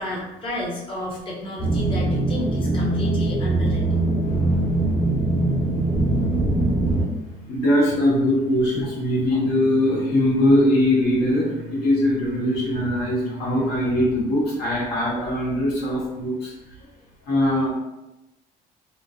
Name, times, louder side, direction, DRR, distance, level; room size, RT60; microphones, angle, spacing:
voice 1, 0.0-4.0, left 1 dB, 30° left, -4 dB, 0.7 m, -31 dB
sound 1, 1.6-7.0, right 2 dB, 50° left, 1.2 m, -22 dB
sound 2, 6.5-13.9, right 2 dB, 75° right, 0.5 m, -38 dB
voice 2, 7.5-16.5 17.3-17.7, left 1 dB, 80° left, -6 dB, 1.2 m, -21 dB
3.1 x 2.6 x 2.4 m, 0.98 s
cardioid pair, 110°, 17 cm